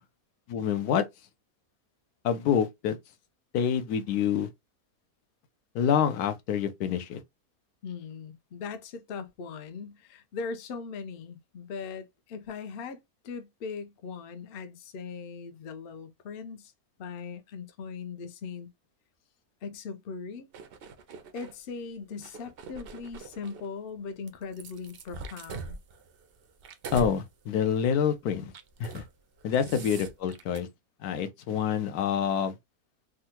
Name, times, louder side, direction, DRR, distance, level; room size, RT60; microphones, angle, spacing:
voice 1, 0.5-1.0 2.2-3.0 3.5-4.5 5.7-7.2 26.9-28.5 28.8-29.0 29.4-30.7 31.0-32.5, left 8 dB, 80° left, 1.1 m, -27 dB
voice 2, 7.8-13.0 13.2-16.7 17.0-18.7 19.6-20.5 21.3-25.8 29.7-29.9, left 5 dB, 60° left, 0.6 m, -39 dB
sound 1, 20.5-21.5 22.1-23.7 24.3-27.2 27.6-27.8 28.5-29.1 29.4-30.6, right 3 dB, 70° right, 0.5 m, -42 dB
3.6 x 2.2 x 2.8 m
omnidirectional pair, 1.6 m